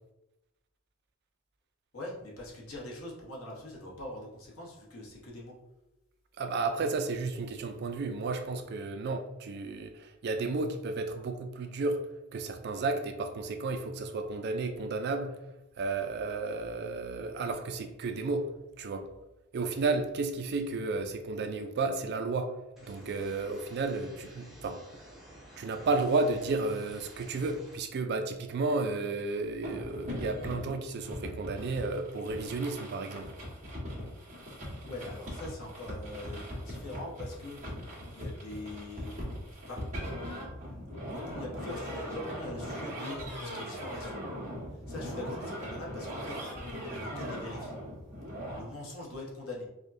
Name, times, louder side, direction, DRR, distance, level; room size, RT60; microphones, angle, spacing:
voice 1, 1.9-5.5 34.8-37.6 38.1-39.2 39.7-39.8 40.6-40.8 41.1-44.2 44.9-47.8 48.5-49.7, left 2 dB, 85° left, -3 dB, 1.0 m, -43 dB
voice 2, 6.4-12.1 12.3-15.3 15.8-18.5 18.8-19.1 19.5-22.5 22.8-24.8 25.6-33.3, right 3 dB, 50° right, 7 dB, 0.4 m, -32 dB
sound 1, 22.8-27.8, equal, ahead, 0.8 m, -52 dB
sound 2, 29.6-48.6, equal, 35° right, 1.3 m, -40 dB
4.9 x 2.2 x 2.6 m, 0.95 s
head